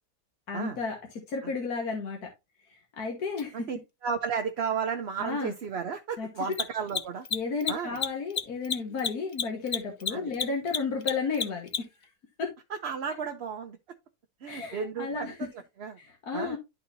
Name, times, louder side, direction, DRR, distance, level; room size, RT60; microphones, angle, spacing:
voice 1, 0.5-1.0 1.3-2.2 3.0-3.5 5.2-5.5 6.2-6.3 7.3-11.7 12.4-12.5 14.5-15.3 16.3-16.6, left 5 dB, 80° left, 2.0 m, -32 dB
Mechanisms, 3.4-3.5 6.4-12.0, left 6 dB, 45° left, 0.6 m, -31 dB
voice 2, 3.5-7.3 7.7-8.0 10.1-10.3 12.7-13.8 14.4-15.5 15.8-16.0 16.3-16.6, right 6 dB, 50° right, 0.9 m, -33 dB
12.0 x 4.3 x 2.7 m
omnidirectional pair, 1.6 m